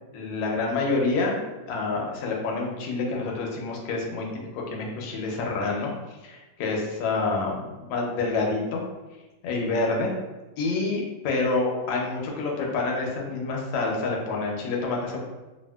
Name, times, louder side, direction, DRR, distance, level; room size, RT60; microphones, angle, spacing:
voice 1, 0.1-1.4 1.7-5.9 6.2-8.8 9.4-10.1 10.6-15.2, left 3 dB, 75° left, -1 dB, 1.3 m, -27 dB
2.9 x 2.7 x 2.2 m, 1.1 s
omnidirectional pair, 2.1 m